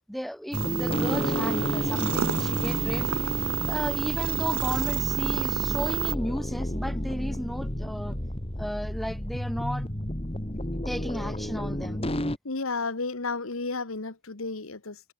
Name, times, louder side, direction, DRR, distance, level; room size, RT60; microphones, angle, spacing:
voice 1, 0.1-3.1 3.7-8.1 8.6-9.9 10.8-12.0, equal, ahead, 0.6 m, -34 dB
sound 1, 0.5-12.4, left 1 dB, 25° left, 2.1 m, -31 dB
sound 2, 0.5-6.1, right 10 dB, 70° right, 0.5 m, -30 dB
voice 2, 12.4-15.1, left 3 dB, 65° left, 1.5 m, -32 dB
head